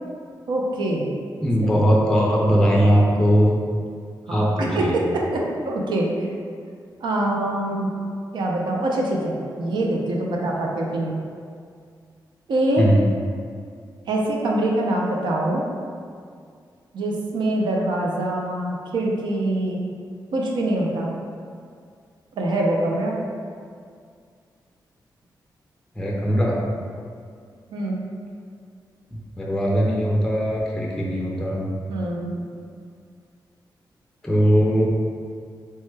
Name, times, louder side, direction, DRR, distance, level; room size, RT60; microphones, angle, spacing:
voice 1, 0.5-1.1 4.3-6.3 7.0-7.9 8.3-11.2 12.5-12.8 14.1-15.6 16.9-19.9 20.3-21.1 22.4-23.2 27.7-28.1 31.9-32.4, right 1 dB, 85° right, -1 dB, 0.5 m, -24 dB
voice 2, 1.4-3.6 4.3-5.0 12.8-13.1 26.0-26.6 29.1-31.7 34.2-34.9, equal, 5° left, -3 dB, 0.4 m, -20 dB
3.2 x 2.1 x 3.2 m, 2.2 s
cardioid pair, 95°, 8 cm